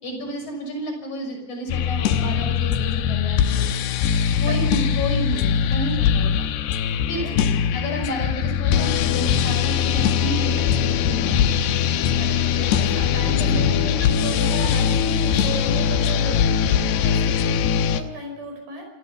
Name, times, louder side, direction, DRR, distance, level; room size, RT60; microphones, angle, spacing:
voice 1, 0.0-3.7 4.4-6.5 7.1-7.3 7.7-11.5 13.4-13.6 14.5-14.7, equal, 45° left, 1 dB, 7.5 m, -31 dB
sound 1, 1.7-18.0, left 8 dB, 85° left, 3.1 m, -21 dB
voice 2, 7.2-7.5 12.2-18.9, right 2 dB, 60° right, 3 dB, 7.0 m, -35 dB
27.0 x 14.5 x 7.1 m, 1.0 s
omnidirectional pair, 4.7 m